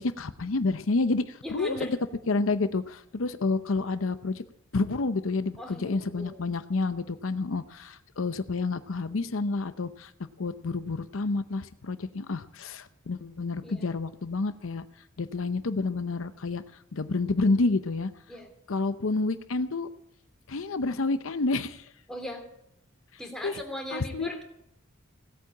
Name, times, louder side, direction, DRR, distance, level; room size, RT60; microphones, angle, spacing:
voice 1, 0.0-1.9 2.3-4.4 4.7-10.1 10.4-14.8 15.2-18.1 18.7-19.9 20.5-21.9 23.4-23.6 23.9-24.3, left 3 dB, 70° left, 11 dB, 0.7 m, -29 dB
voice 2, 1.4-2.0 5.6-6.4 13.6-13.9 18.3-18.5 22.1-22.4 23.2-24.4, equal, 5° left, 1 dB, 2.9 m, -38 dB
17.0 x 8.5 x 8.5 m, 0.76 s
head